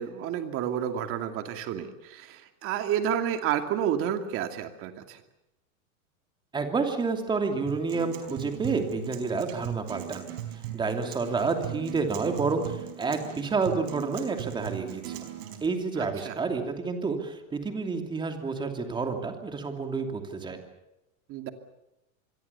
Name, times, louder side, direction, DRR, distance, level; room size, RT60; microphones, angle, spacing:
voice 1, 0.0-5.2 16.0-16.4 21.3-21.5, right 9 dB, 35° right, 7 dB, 2.6 m, -30 dB
voice 2, 6.5-10.2 10.7-15.2 15.6-20.6, right 4 dB, 10° right, 5 dB, 2.8 m, -29 dB
Acoustic guitar, 7.7-15.7, right 12 dB, 50° right, 4.8 m, -39 dB
27.0 x 22.0 x 7.0 m, 0.91 s
supercardioid pair, 160°, 40 cm